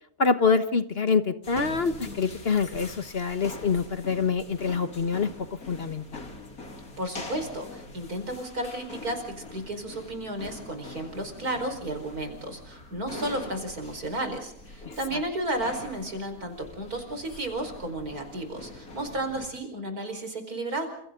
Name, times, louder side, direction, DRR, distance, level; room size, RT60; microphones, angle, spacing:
voice 1, 0.2-5.3 5.7-6.3 14.8-14.9, left 5 dB, 45° left, 10 dB, 1.4 m, -25 dB
sound 1, 1.4-19.5, left 2 dB, 75° left, 3.9 m, -43 dB
voice 2, 7.0-20.9, right 1 dB, 85° right, 7 dB, 5.3 m, -33 dB
29.5 x 27.5 x 3.8 m, 0.70 s
omnidirectional pair, 1.5 m